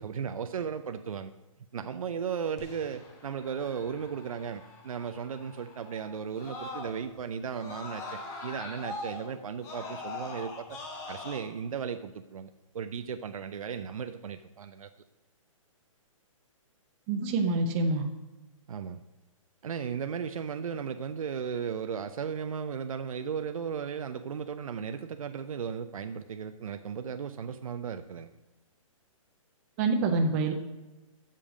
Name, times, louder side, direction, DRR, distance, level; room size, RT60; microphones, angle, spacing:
voice 1, 0.0-1.3 1.7-10.8 11.1-14.9 18.7-19.0 19.6-28.3, right 7 dB, 80° right, 8 dB, 0.6 m, -36 dB
Screaming, 2.6-7.2 7.5-11.4, left 2 dB, 15° left, 1.0 m, -42 dB
voice 2, 17.1-18.0 29.8-30.5, right 3 dB, 20° right, 4 dB, 0.6 m, -26 dB
7.7 x 6.8 x 6.2 m, 1.1 s
hypercardioid pair, 165°, 18 cm